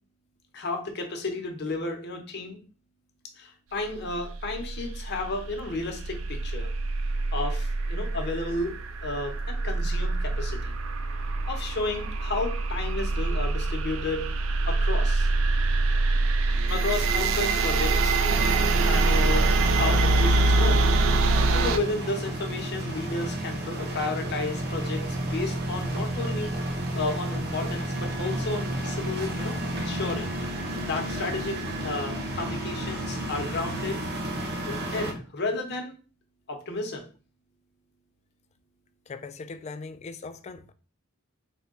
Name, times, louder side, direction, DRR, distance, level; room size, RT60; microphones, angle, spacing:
voice 1, 0.5-2.6 3.4-6.7 7.3-10.7 11.5-14.3 14.7-15.3 16.7-18.2 18.8-20.8 21.5-26.5 27.0-30.3 30.8-34.0 34.6-36.0 36.5-37.1, left 3 dB, 55° left, 0.9 m, -32 dB
sound 1, 4.1-21.8, right 3 dB, 75° right, 0.4 m, -25 dB
sound 2, 18.3-35.1, right 1 dB, 55° right, 0.7 m, -32 dB
voice 2, 39.1-40.7, left 4 dB, 35° left, 0.3 m, -40 dB
3.5 x 2.2 x 3.7 m
head